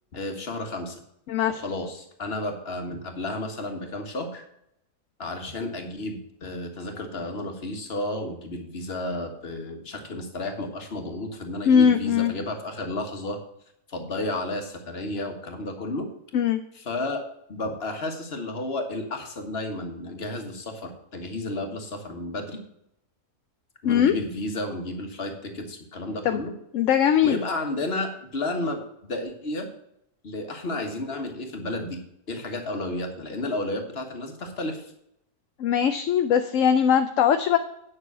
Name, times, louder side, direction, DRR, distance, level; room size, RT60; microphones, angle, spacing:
voice 1, 0.1-1.0 1.5-4.4 5.2-13.4 13.9-16.1 16.7-17.2 17.5-22.6 23.8-26.5 27.2-29.7 30.2-32.0 32.3-34.9, left 2 dB, 40° left, 5 dB, 1.7 m, -32 dB
voice 2, 1.3-1.6 11.7-12.3 16.3-16.6 23.8-24.1 26.2-26.4 26.7-27.4 35.6-37.6, left 8 dB, 65° left, 8 dB, 0.9 m, -20 dB
9.6 x 6.3 x 6.1 m, 0.76 s
omnidirectional pair, 1.6 m